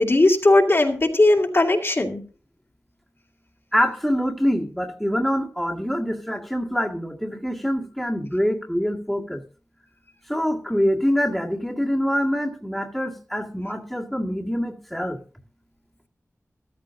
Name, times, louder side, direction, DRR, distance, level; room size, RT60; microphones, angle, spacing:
voice 1, 0.0-2.2, left 2 dB, 50° left, 0 dB, 2.3 m, -18 dB
voice 2, 3.7-9.4 10.3-15.2, equal, ahead, -1 dB, 1.9 m, -25 dB
14.0 x 13.5 x 2.6 m, 0.38 s
wide cardioid pair, 55°, 5 cm